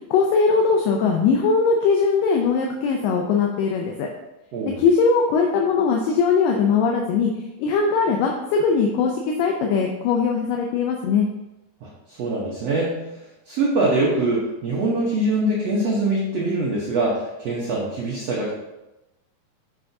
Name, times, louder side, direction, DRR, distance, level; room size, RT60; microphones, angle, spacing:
voice 1, 0.1-4.1 4.7-7.3 7.6-11.3, left 5 dB, 80° left, 1 dB, 2.0 m, -20 dB
voice 2, 11.8-13.0 13.5-18.5, right 2 dB, 90° right, -5 dB, 1.4 m, -23 dB
7.7 x 5.7 x 2.7 m, 0.97 s
omnidirectional pair, 4.4 m